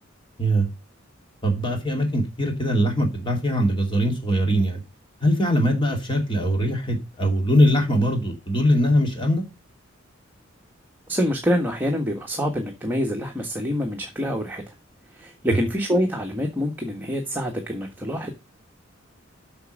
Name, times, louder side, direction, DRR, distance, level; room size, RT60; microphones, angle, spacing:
voice 1, 1.4-4.8 5.2-9.4, equal, 25° left, 2.7 m, -21 dB
voice 2, 11.1-14.6 15.2-18.3, equal, 10° right, 1.5 m, -26 dB
8.0 x 6.2 x 6.5 m
head